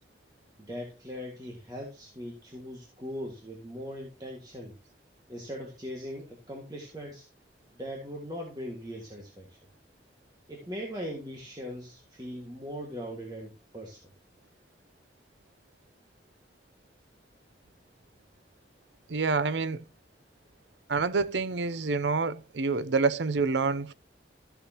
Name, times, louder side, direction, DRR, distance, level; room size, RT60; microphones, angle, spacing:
voice 1, 0.6-4.8 5.3-7.3 7.7-9.6 10.5-14.0, equal, 20° right, 1.9 m, -40 dB
voice 2, 19.1-19.8 20.9-23.9, right 4 dB, 85° right, 0.6 m, -27 dB
14.0 x 6.8 x 2.9 m
head